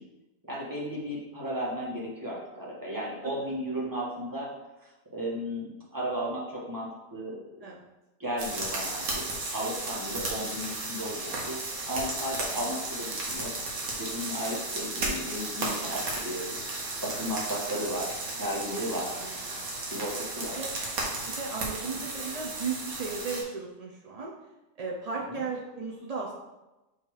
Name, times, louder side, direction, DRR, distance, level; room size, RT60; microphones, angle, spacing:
voice 1, 0.4-4.5 4.8-5.6 5.9-7.4 8.2-9.2 9.5-11.6 11.9-13.5 14.0-16.6 17.0-19.2 19.8-20.6 21.9-22.0 25.3-25.4, equal, 15° right, -5 dB, 1.4 m, -34 dB
sound 1, 8.4-23.4, right 2 dB, 90° right, 1.9 m, -34 dB
voice 2, 19.1-19.6 20.5-20.7 21.2-24.3 24.8-26.4, right 4 dB, 60° right, -3 dB, 0.4 m, -36 dB
7.2 x 3.3 x 4.7 m, 1.0 s
omnidirectional pair, 1.8 m